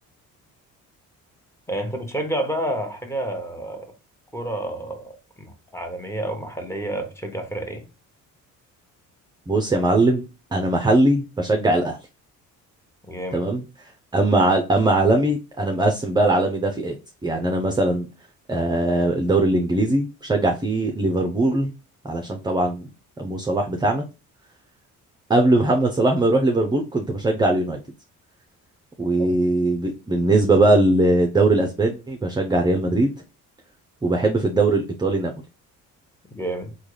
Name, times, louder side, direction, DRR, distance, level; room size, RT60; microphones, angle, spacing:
voice 1, 1.7-3.9 4.3-5.1 5.4-7.8 13.1-13.5 29.2-29.3 36.4-36.7, right 1 dB, 10° left, 1.0 m, -29 dB
voice 2, 9.5-10.2 10.5-12.0 13.3-13.6 14.1-17.0 17.2-18.1 18.5-21.7 22.0-22.9 23.2-24.0 25.3-27.8 29.0-33.1 34.0-35.3, right 2 dB, 10° right, 0.5 m, -20 dB
3.5 x 2.3 x 3.1 m
supercardioid pair, 75°, 35 cm